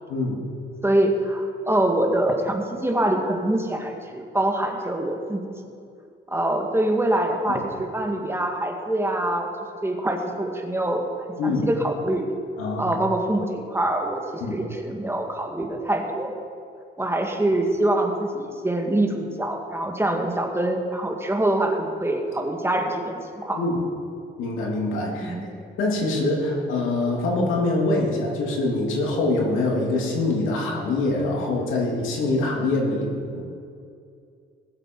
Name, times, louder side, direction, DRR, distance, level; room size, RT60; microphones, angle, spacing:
voice 1, 0.8-5.4 6.3-9.5 9.8-11.0 11.4-12.2 12.8-14.2 14.5-16.3 17.0-23.6 25.2-25.5, right 1 dB, 10° right, 2 dB, 1.8 m, -24 dB
voice 2, 12.6-13.0 14.4-14.5 23.5-23.7 24.4-25.4 25.8-33.4, left 2 dB, 90° left, -1 dB, 2.9 m, -24 dB
20.0 x 7.7 x 4.7 m, 2.4 s
cardioid pair, 90°, 20 cm